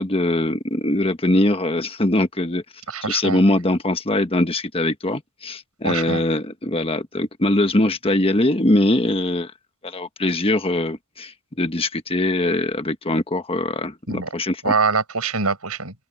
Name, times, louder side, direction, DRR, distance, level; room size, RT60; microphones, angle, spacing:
voice 1, 0.0-2.6 3.1-9.5 9.8-14.7, left 1 dB, 25° left, 1.3 m, -22 dB
voice 2, 2.9-3.4 5.8-6.2 14.1-14.3 14.6-15.9, right 4 dB, 85° right, 6.1 m, -23 dB
open air
head